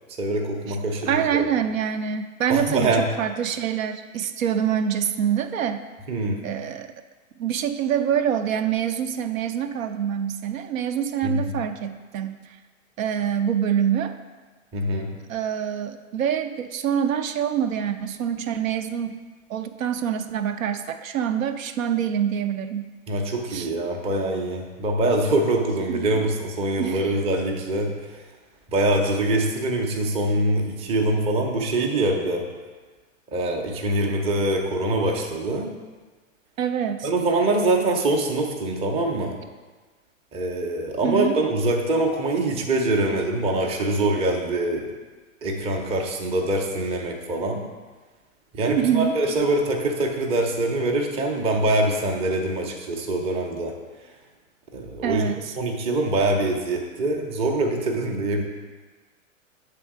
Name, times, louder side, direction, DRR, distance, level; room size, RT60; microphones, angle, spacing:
voice 1, 0.2-1.5 2.5-3.1 6.1-6.4 11.2-11.6 14.7-15.1 23.1-28.1 28.7-32.5 33.3-35.7 37.0-39.4 40.3-44.9 45.4-47.6 48.5-53.8 54.7-55.2 55.6-58.4, right 2 dB, 15° right, 2 dB, 0.6 m, -24 dB
voice 2, 1.1-5.8 6.4-6.9 7.4-12.5 13.0-14.1 15.3-19.2 19.5-22.9 23.5-23.7 25.9-26.1 26.8-27.1 36.6-37.1 41.0-41.4 48.7-49.1 55.0-55.5, right 9 dB, 75° right, 8 dB, 0.6 m, -25 dB
7.6 x 3.6 x 4.7 m, 1.3 s
hypercardioid pair, 125°, 40 cm